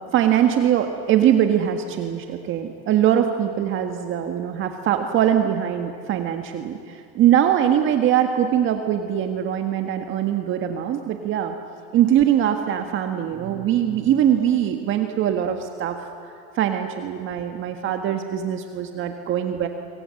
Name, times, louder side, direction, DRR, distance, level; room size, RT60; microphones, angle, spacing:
voice 1, 0.1-11.5 11.9-16.0 16.5-19.7, right 10 dB, 40° right, 6 dB, 1.7 m, -22 dB
27.0 x 24.0 x 7.8 m, 2.7 s
supercardioid pair, 140°, 30 cm